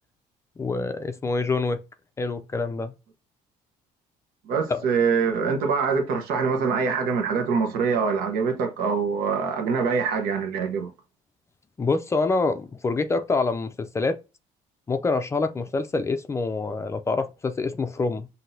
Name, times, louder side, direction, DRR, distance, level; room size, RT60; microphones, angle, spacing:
voice 1, 0.6-1.8 2.2-2.9 4.7-4.9 11.8-14.2 14.9-18.3, left 3 dB, 20° left, 0.4 m, -26 dB
voice 2, 4.5-10.9, right 5 dB, 85° right, 1.0 m, -24 dB
5.9 x 2.8 x 2.7 m
cardioid pair, 145°, 15 cm